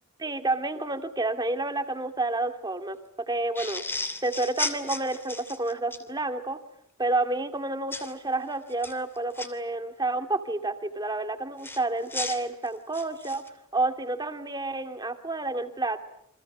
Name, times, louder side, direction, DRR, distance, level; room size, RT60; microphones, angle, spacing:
voice 1, 0.2-3.0 3.3-3.8 4.2-6.6 7.0-13.4 13.7-16.0, right 2 dB, 20° right, 7 dB, 2.3 m, -29 dB
sound 1, 3.5-6.0 7.9-8.1 8.7-9.5 11.6-13.5, left 2 dB, 10° left, 2.8 m, -34 dB
29.0 x 26.0 x 7.4 m, 0.71 s
head